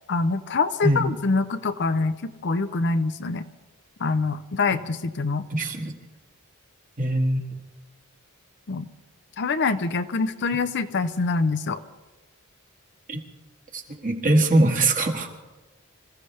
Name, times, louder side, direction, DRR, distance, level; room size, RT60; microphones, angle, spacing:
voice 1, 0.1-3.4 4.0-5.5 8.7-8.9 9.4-11.8, left 4 dB, 50° left, 10 dB, 0.6 m, -25 dB
voice 2, 5.5-5.9 7.0-7.4 13.1-13.2 13.7-15.3, right 2 dB, 35° right, 3 dB, 1.7 m, -22 dB
26.5 x 15.0 x 3.3 m, 1.2 s
head